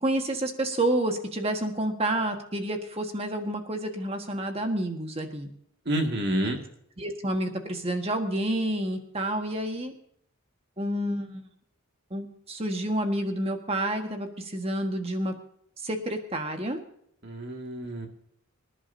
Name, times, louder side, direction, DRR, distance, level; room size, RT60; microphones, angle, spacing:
voice 1, 0.0-5.5 7.0-9.9 10.8-11.4 12.1-15.3 15.8-16.8, right 1 dB, 25° right, 5 dB, 1.6 m, -29 dB
voice 2, 5.9-6.6 17.2-18.1, right 1 dB, 50° right, 3 dB, 2.2 m, -28 dB
25.5 x 11.0 x 2.8 m, 0.69 s
head